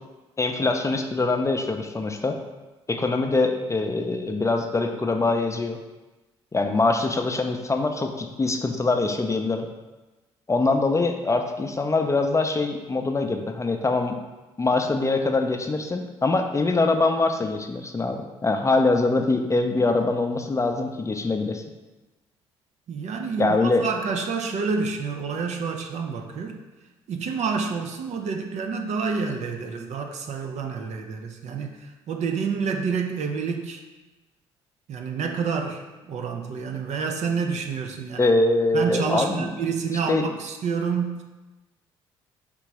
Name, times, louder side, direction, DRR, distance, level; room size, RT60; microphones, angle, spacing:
voice 1, 0.4-2.4 2.9-5.8 6.5-9.7 10.5-14.1 14.6-21.6 23.4-23.8 38.2-39.5 40.1-40.2, left 3 dB, 20° left, 4 dB, 0.5 m, -23 dB
voice 2, 22.9-26.6 27.1-33.8 34.9-38.3 38.7-41.2, right 5 dB, 55° right, 4 dB, 0.6 m, -28 dB
3.7 x 3.0 x 4.7 m, 1.1 s
hypercardioid pair, 50°, 14 cm